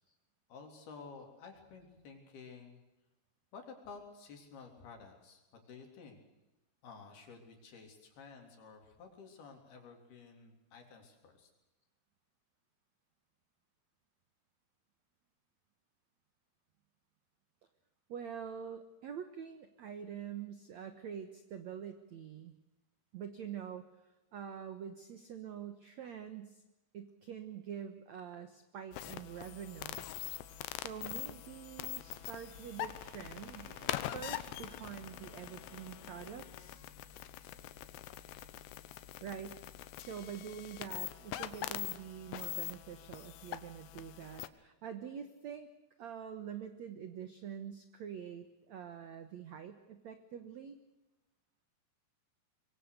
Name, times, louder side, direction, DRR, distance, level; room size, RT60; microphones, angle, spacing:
voice 1, 0.5-2.8 3.5-6.2 6.8-11.5, left 5 dB, 60° left, 3 dB, 5.3 m, -52 dB
voice 2, 18.1-22.5 23.1-23.9 24.3-26.6 26.9-30.1 30.7-36.9 39.2-39.6 40.0-45.7 46.0-50.8, right 8 dB, 75° right, 8 dB, 1.6 m, -46 dB
sound 1, 28.9-44.5, left 14 dB, 80° left, 3.1 m, -43 dB
sound 2, 29.1-39.4 39.7-39.8, right 3 dB, 40° right, 2.9 m, -61 dB
24.5 x 22.5 x 6.6 m, 1.0 s
omnidirectional pair, 5.1 m